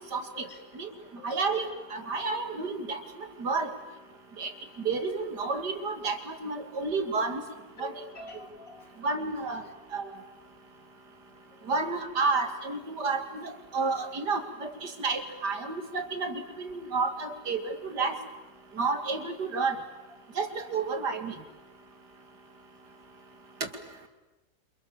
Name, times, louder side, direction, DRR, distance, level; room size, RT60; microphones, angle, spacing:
voice 1, 0.1-0.5 0.7-0.9 1.2-3.7 4.4-4.5 4.8-7.4 7.8-7.9 9.0-9.6 9.9-10.1 11.7-18.2 18.8-19.8 20.4-21.4, right 4 dB, 70° right, 7 dB, 3.0 m, -31 dB
voice 2, 7.8-9.0, left 3 dB, 55° left, 5 dB, 3.3 m, -46 dB
28.5 x 27.5 x 7.3 m, 1.1 s
omnidirectional pair, 1.8 m